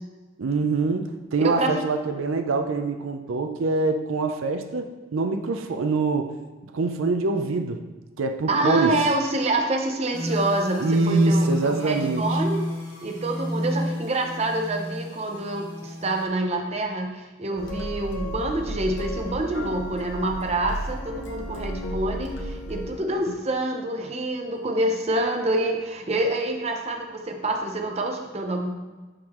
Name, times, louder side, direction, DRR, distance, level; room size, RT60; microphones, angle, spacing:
voice 1, 0.4-6.3 6.7-7.8 8.2-9.0 10.8-12.4, right 3 dB, 80° right, 6 dB, 0.5 m, -25 dB
voice 2, 1.4-1.7 8.5-12.6 13.0-28.7, right 2 dB, 30° right, 3 dB, 0.7 m, -26 dB
sound 1, 10.1-16.2, equal, 20° left, 1.7 m, -28 dB
sound 2, 17.5-23.3, left 1 dB, 70° left, 1.0 m, -39 dB
sound 3, 17.6-23.0, equal, 50° left, 0.6 m, -35 dB
11.0 x 3.8 x 3.0 m, 1.2 s
head